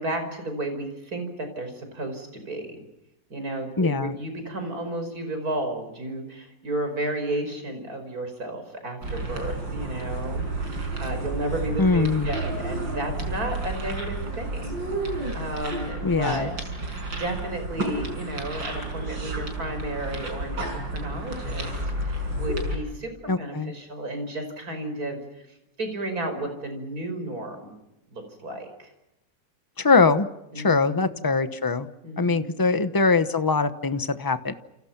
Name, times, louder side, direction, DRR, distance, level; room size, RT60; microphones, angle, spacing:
voice 1, 0.0-2.8 3.3-16.5 17.1-21.7 22.0-25.2 25.8-27.7 28.1-28.9 30.5-31.2 32.0-32.6, right 1 dB, 50° right, 6 dB, 6.0 m, -33 dB
voice 2, 3.8-4.1 11.8-12.3 16.0-16.5 23.3-23.7 29.8-30.3 30.6-31.9 32.2-34.5, left 4 dB, 15° left, 12 dB, 0.7 m, -22 dB
sound 1, 9.0-22.8, right 2 dB, 85° right, 6.1 m, -31 dB
29.5 x 28.5 x 5.9 m, 0.92 s
omnidirectional pair, 2.0 m